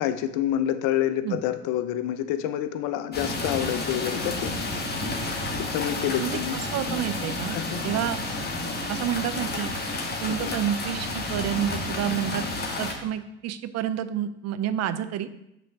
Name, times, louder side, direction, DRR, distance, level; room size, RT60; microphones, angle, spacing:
voice 1, 0.0-4.5 5.6-6.6 7.5-7.8 8.6-8.7 10.4-10.5, left 11 dB, 65° left, 11 dB, 0.6 m, -28 dB
sound 1, 3.1-12.9, left 2 dB, 30° left, 1.4 m, -31 dB
voice 2, 6.2-8.2 8.9-9.7 10.2-12.4 12.8-15.3, right 10 dB, 50° right, 12 dB, 0.6 m, -29 dB
5.9 x 3.4 x 5.9 m, 0.84 s
hypercardioid pair, 70°, 34 cm